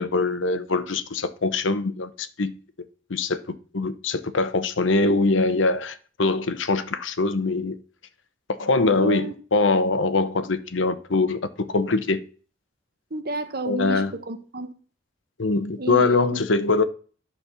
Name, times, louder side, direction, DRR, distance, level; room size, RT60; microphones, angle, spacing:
voice 1, 0.0-2.5 3.1-3.4 3.7-7.8 8.5-12.2 13.7-14.1 15.4-16.8, left 3 dB, 90° left, 0.9 m, -23 dB
voice 2, 9.0-9.3 13.1-14.7 15.8-16.4, right 2 dB, 55° right, 1.2 m, -31 dB
11.0 x 4.3 x 6.9 m
head